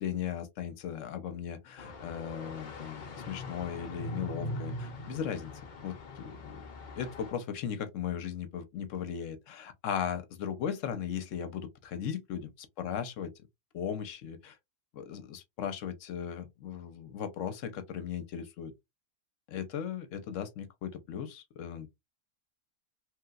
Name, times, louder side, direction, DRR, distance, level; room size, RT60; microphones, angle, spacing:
voice 1, 0.0-5.5 5.8-6.6 7.0-13.3 13.7-14.6 14.9-18.7 19.5-21.9, left 8 dB, 75° left, 1.0 m, -37 dB
sound 1, 1.8-7.3, left 2 dB, 50° left, 0.6 m, -41 dB
3.1 x 2.8 x 2.3 m
omnidirectional pair, 1.3 m